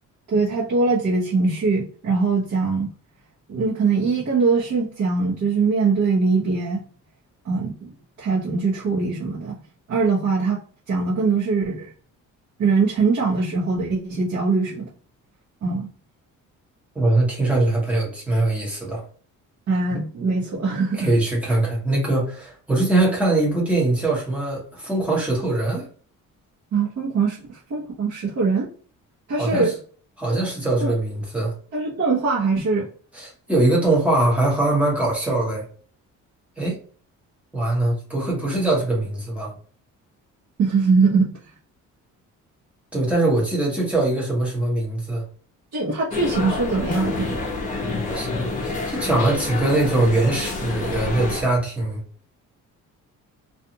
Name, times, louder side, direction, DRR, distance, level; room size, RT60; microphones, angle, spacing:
voice 1, 0.3-2.9 3.5-6.8 7.4-7.9 8.2-9.6 9.9-10.6 10.9-11.9 12.6-14.9 15.6-15.9 19.7-21.1 26.7-28.7 29.3-29.7 30.8-30.9 31.7-32.9 40.6-41.3 45.7-47.4, right 4 dB, 55° right, -8 dB, 1.0 m, -22 dB
voice 2, 16.9-19.0 20.9-25.9 29.4-29.7 30.2-31.5 33.1-35.6 36.6-36.8 37.5-39.5 42.9-45.2 48.1-48.3 48.6-52.0, right 2 dB, 5° right, -4 dB, 1.0 m, -22 dB
sound 1, 46.1-51.4, left 3 dB, 25° left, 0.7 m, -28 dB
2.5 x 2.4 x 2.8 m, 0.44 s
cardioid pair, 175°, 31 cm